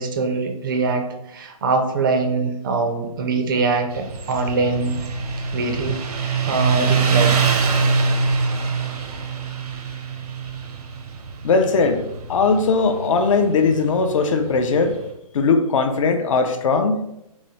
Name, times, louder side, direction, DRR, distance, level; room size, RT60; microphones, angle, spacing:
voice 1, 0.0-5.0 5.5-7.5, right 3 dB, 35° right, 5 dB, 0.4 m, -23 dB
Motorcycle, 3.9-15.0, right 5 dB, 75° right, 0.7 m, -24 dB
voice 2, 11.4-14.9 15.3-17.1, left 4 dB, 55° left, 7 dB, 0.5 m, -19 dB
3.9 x 2.3 x 3.0 m, 0.83 s
hypercardioid pair, 155°, 20 cm